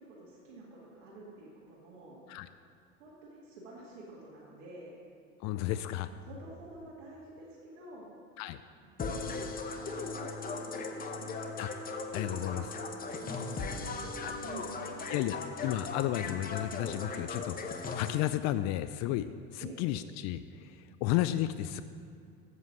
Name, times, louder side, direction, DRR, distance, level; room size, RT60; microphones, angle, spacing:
voice 1, 0.0-2.2 3.0-5.0 5.6-5.8 6.2-8.1 8.8-11.3 12.2-12.6 13.1-15.0 19.6-19.8, right 2 dB, 75° right, -7 dB, 2.1 m, -49 dB
voice 2, 5.4-6.1 8.4-8.6 11.6-11.7 12.1-12.7 14.2-14.3 15.1-21.8, left 13 dB, 50° left, 13 dB, 0.4 m, -33 dB
sound 1, 9.0-18.2, left 4 dB, 25° left, 0.8 m, -38 dB
8.1 x 7.5 x 6.1 m, 2.3 s
hypercardioid pair, 90°, 36 cm